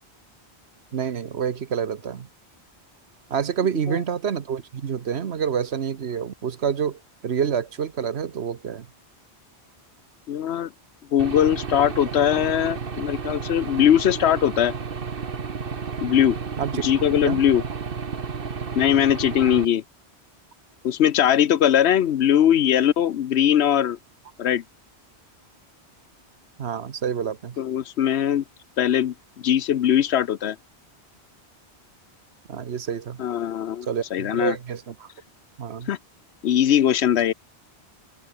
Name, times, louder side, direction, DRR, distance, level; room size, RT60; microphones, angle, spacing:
voice 1, 0.9-2.3 3.3-8.9 16.6-16.8 17.2-17.4 26.6-27.6 32.5-33.2 33.9-35.1 35.6-35.9, right 7 dB, 70° right, 1.3 m, -28 dB
voice 2, 10.3-10.7 11.1-14.7 16.0-16.4 16.8-17.6 18.7-19.8 20.8-24.0 24.4-24.6 27.6-28.4 28.8-30.6 33.2-34.6 35.9-36.0 36.4-37.3, left 10 dB, 75° left, 1.0 m, -20 dB
Aircraft / Engine, 11.2-19.6, right 5 dB, 55° right, 1.5 m, -32 dB
open air
omnidirectional pair, 1.1 m